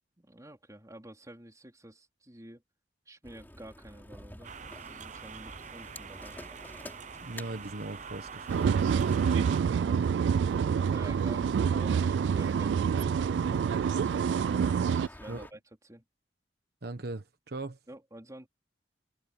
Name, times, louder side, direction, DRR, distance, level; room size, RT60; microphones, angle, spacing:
voice 1, 0.2-2.6 3.1-6.4 9.7-10.2 10.5-16.0 17.9-18.5, right 1 dB, 20° right, 3.9 m, -50 dB
sound 1, 3.2-15.5, left 1 dB, 10° left, 3.7 m, -51 dB
sound 2, 4.4-9.6, right 6 dB, 45° right, 0.8 m, -45 dB
voice 2, 7.2-8.8 15.3-15.5 16.8-17.8, right 2 dB, 60° right, 1.2 m, -39 dB
sound 3, 8.5-15.1, right 7 dB, 75° right, 0.3 m, -27 dB
head